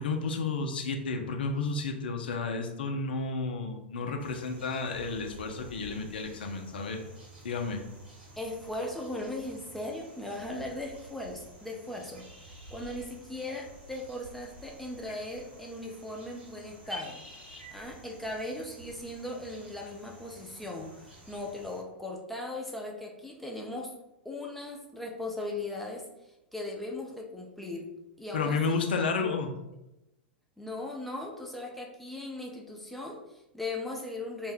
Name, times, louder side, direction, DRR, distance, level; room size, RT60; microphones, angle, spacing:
voice 1, 0.0-7.0 7.4-7.8 28.3-29.5, left 4 dB, 60° left, 4 dB, 0.4 m, -31 dB
sound 1, 4.2-21.8, right 1 dB, 75° right, 1.2 m, -50 dB
voice 2, 8.4-17.2 17.7-23.9 24.2-27.9 28.2-28.8 29.1-29.3 30.6-34.5, left 2 dB, 5° left, -1 dB, 0.5 m, -38 dB
2.5 x 2.1 x 3.4 m, 0.93 s
figure-of-eight pair, 95°, 6 cm